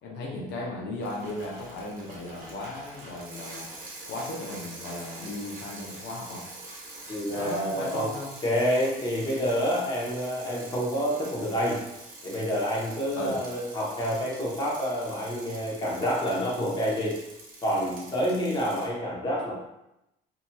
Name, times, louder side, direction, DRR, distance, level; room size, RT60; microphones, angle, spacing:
voice 1, 0.0-3.7 4.1-6.4 7.3-8.3 13.1-13.4, left 2 dB, 85° left, -3 dB, 0.7 m, -36 dB
Bicycle, 1.0-18.9, right 2 dB, 50° right, 0.9 m, -45 dB
voice 2, 7.1-8.1 8.4-11.8 12.2-17.1 17.6-19.5, equal, 25° left, -5 dB, 0.9 m, -28 dB
2.8 x 2.6 x 2.2 m, 0.88 s
cardioid pair, 110°, 17 cm